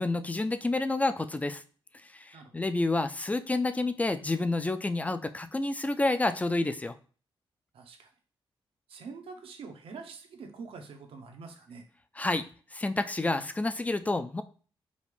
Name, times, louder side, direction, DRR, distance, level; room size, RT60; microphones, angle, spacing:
voice 1, 0.0-1.6 2.1-6.9 12.2-12.5 12.7-14.4, left 2 dB, 15° left, 11 dB, 0.4 m, -29 dB
voice 2, 7.7-8.1 8.9-11.8, right 4 dB, 85° right, 4 dB, 0.8 m, -45 dB
5.1 x 2.5 x 3.3 m, 0.40 s
cardioid pair, 75°, 9 cm